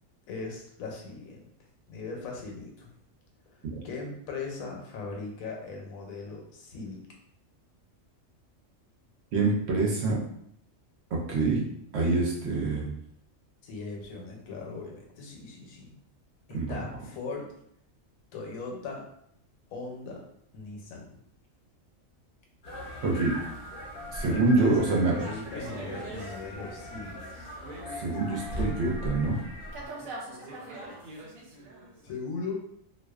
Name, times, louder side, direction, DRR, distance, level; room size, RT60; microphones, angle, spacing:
voice 1, 0.3-1.4 1.9-2.9 3.5-7.0 13.6-15.9 16.5-17.5 18.3-19.1 19.7-20.3 20.5-21.2 24.2-27.2 32.0-32.7, left 4 dB, 90° left, 0 dB, 1.1 m, -39 dB
voice 2, 9.3-10.2 11.1-11.7 11.9-12.9 16.5-16.8 23.0-23.4 24.1-25.1 28.0-29.4, right 3 dB, 65° right, -3 dB, 0.7 m, -26 dB
sound 1, 22.6-29.9, left 1 dB, 50° left, 0.8 m, -39 dB
sound 2, 25.2-28.9 29.2-32.1, right 2 dB, 90° right, 1.0 m, -43 dB
2.4 x 2.2 x 2.3 m, 0.70 s
omnidirectional pair, 1.4 m